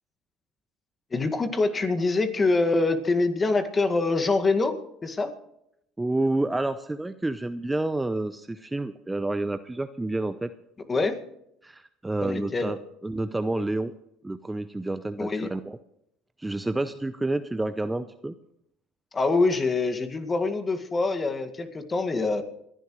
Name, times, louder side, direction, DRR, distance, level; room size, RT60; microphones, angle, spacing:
voice 1, 1.1-4.8 5.0-5.3 10.9-11.2 12.2-12.7 15.2-15.5 19.1-22.4, left 3 dB, 25° left, 7 dB, 1.9 m, -25 dB
voice 2, 6.0-10.5 11.6-12.8 13.0-13.9 14.2-15.8 16.4-18.3, right 2 dB, 10° right, 11 dB, 0.6 m, -29 dB
27.5 x 11.0 x 3.2 m, 0.77 s
supercardioid pair, 80°, 0 cm